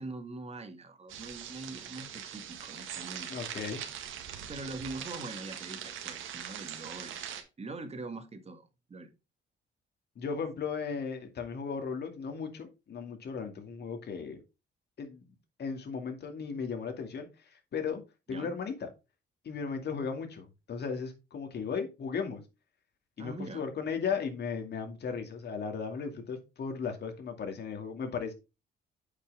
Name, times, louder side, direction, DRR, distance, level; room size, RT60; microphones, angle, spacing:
voice 1, 0.0-3.3 4.5-7.2 7.6-9.1 18.3-18.5 23.2-23.6, right 2 dB, 30° right, 1.8 m, -43 dB
sound 1, 1.1-7.4, right 9 dB, 85° right, 1.8 m, -42 dB
voice 2, 3.3-3.8 10.2-14.4 15.0-15.3 15.6-18.0 18.3-18.9 19.4-22.4 23.2-28.3, left 6 dB, 55° left, 2.3 m, -36 dB
8.2 x 6.0 x 3.5 m
cardioid pair, 90°, 20 cm